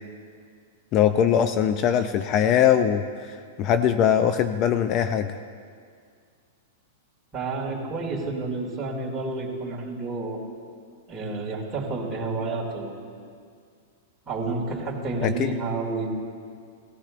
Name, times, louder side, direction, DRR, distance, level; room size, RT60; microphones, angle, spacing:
voice 1, 0.9-5.4 15.2-15.5, left 9 dB, 35° left, 10 dB, 0.4 m, -22 dB
voice 2, 7.3-10.4 11.1-12.9 14.3-16.1, right 3 dB, 15° right, -3 dB, 2.5 m, -30 dB
18.0 x 15.0 x 2.5 m, 2.2 s
supercardioid pair, 145°, 0 cm